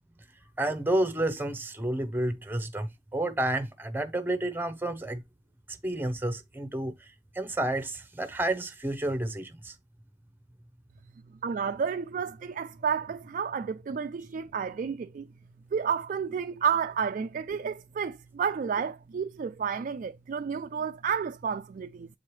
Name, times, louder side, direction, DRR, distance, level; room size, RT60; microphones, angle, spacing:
voice 1, 0.6-5.2 5.7-9.7, right 1 dB, 10° right, 0.7 m, -30 dB
voice 2, 11.4-15.3 15.7-22.1, right 6 dB, 45° right, 0.3 m, -31 dB
7.7 x 4.7 x 3.1 m
head